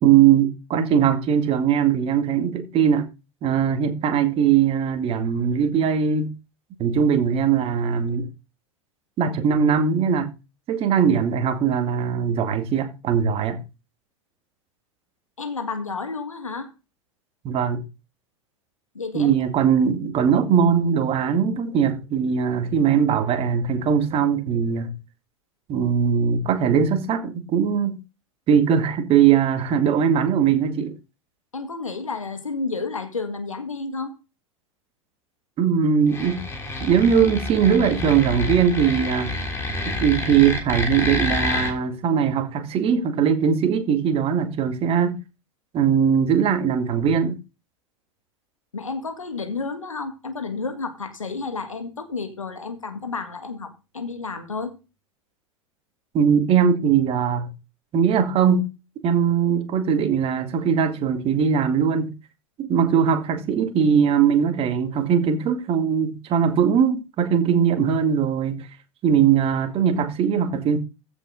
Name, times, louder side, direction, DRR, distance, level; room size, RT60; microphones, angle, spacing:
voice 1, 0.0-3.1 3.4-6.3 6.8-8.3 9.2-10.3 10.7-13.6 17.4-17.8 19.1-24.9 25.7-28.0 28.5-31.0 35.6-36.5 36.8-39.3 39.9-45.2 45.7-47.4 56.1-57.5 57.9-58.7 59.0-62.2 62.6-68.7 69.0-70.8, right 7 dB, 35° right, 2.1 m, -20 dB
voice 2, 15.4-16.7 18.9-19.4 31.5-34.1 48.7-54.8, left 4 dB, 85° left, 1.9 m, -31 dB
sound 1, 36.1-41.7, left 2 dB, 15° left, 3.4 m, -28 dB
15.0 x 5.4 x 3.8 m
figure-of-eight pair, 85°, 17 cm